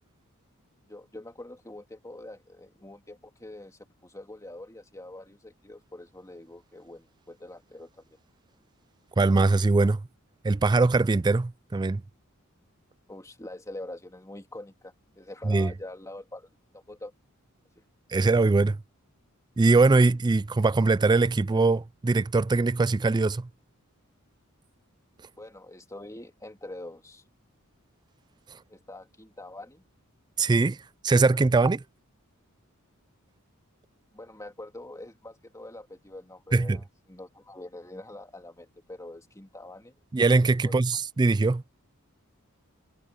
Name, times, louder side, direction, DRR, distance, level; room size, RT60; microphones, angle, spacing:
voice 1, 0.9-8.0 13.1-16.5 16.7-17.1 25.4-27.2 28.7-29.8 34.1-39.9 40.6-40.8, left 1 dB, 15° left, 3.0 m, -44 dB
voice 2, 9.2-10.0 10.4-12.0 15.5-15.7 18.1-18.8 19.6-23.5 30.4-30.8 31.0-31.8 36.5-36.8 40.1-41.6, right 3 dB, 20° right, 0.3 m, -22 dB
head